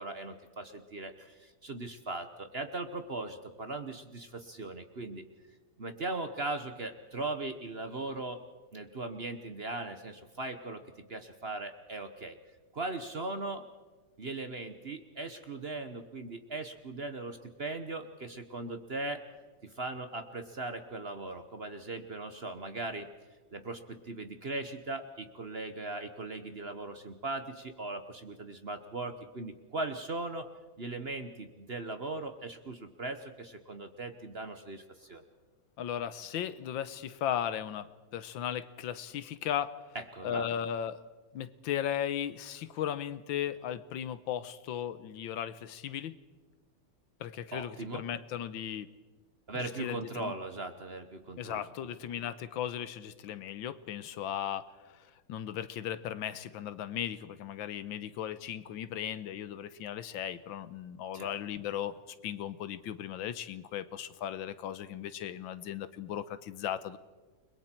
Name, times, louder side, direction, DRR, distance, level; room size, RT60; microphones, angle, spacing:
voice 1, 0.0-5.2 5.8-8.4 8.7-12.4 12.7-13.6 14.2-19.2 19.6-23.1 23.5-30.5 30.8-35.2 39.9-40.5 47.5-48.0 49.5-51.6 61.1-61.3, right 2 dB, 40° right, 8 dB, 1.0 m, -39 dB
voice 2, 35.8-39.8 40.2-41.0 41.3-46.1 47.2-48.9 49.5-50.3 51.4-61.9 62.2-67.0, left 10 dB, 80° left, 14 dB, 1.6 m, -36 dB
29.5 x 21.5 x 4.5 m, 1.3 s
omnidirectional pair, 2.1 m